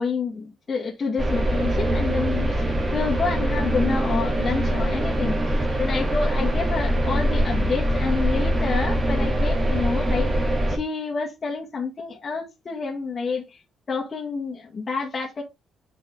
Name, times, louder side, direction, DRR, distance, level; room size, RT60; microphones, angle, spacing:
voice 1, 0.0-5.3 5.8-10.3 10.7-13.6 13.9-15.4, left 4 dB, 40° left, 1.9 m, -28 dB
sound 1, 1.2-10.8, right 1 dB, 25° right, 3.0 m, -23 dB
6.1 x 5.4 x 3.5 m
cardioid pair, 90°, 0 cm